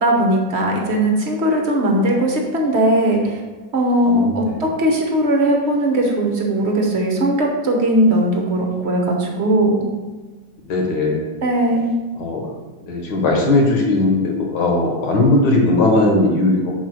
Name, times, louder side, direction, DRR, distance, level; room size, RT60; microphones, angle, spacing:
voice 1, 0.0-3.3 3.7-9.9 11.4-11.9, right 1 dB, 45° right, 0 dB, 1.1 m, -18 dB
voice 2, 4.1-4.7 10.7-11.3 12.2-16.7, left 2 dB, 70° left, 0 dB, 1.8 m, -18 dB
5.1 x 4.8 x 6.1 m, 1.3 s
omnidirectional pair, 1.9 m